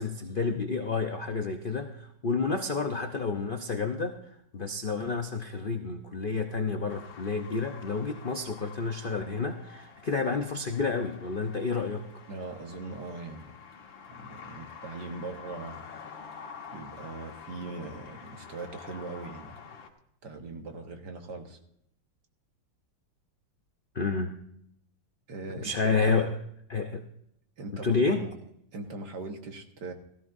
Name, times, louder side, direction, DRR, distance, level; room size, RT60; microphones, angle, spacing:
voice 1, 0.0-4.2 4.5-12.1 23.9-24.3 25.6-26.3 26.7-27.0 27.8-28.2, left 4 dB, 55° left, 5 dB, 0.6 m, -30 dB
sound 1, 6.9-19.9, left 6 dB, 80° left, 2.2 m, -48 dB
voice 2, 12.3-13.5 14.1-15.9 16.7-19.6 20.2-21.6 25.3-26.2 27.6-28.3 28.7-29.9, right 3 dB, 60° right, 4 dB, 2.0 m, -40 dB
17.0 x 14.5 x 2.6 m, 0.74 s
omnidirectional pair, 2.1 m